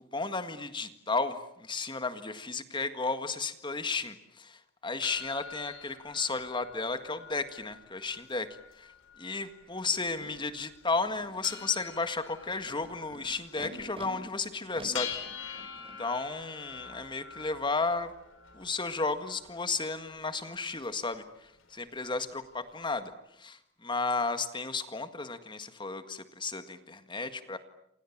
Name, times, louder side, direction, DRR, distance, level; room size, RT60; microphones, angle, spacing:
voice 1, 0.1-8.9 9.2-15.1 16.0-18.1 18.5-23.1 23.4-27.6, left 3 dB, 25° left, 9 dB, 1.8 m, -33 dB
sound 1, 5.0-23.0, left 8 dB, 70° left, 4.5 m, -46 dB
Animal, 10.2-10.3 11.0-11.6 12.4-14.1 14.7-16.0, right 1 dB, 30° right, 4.2 m, -48 dB
28.5 x 27.5 x 7.3 m, 0.76 s
head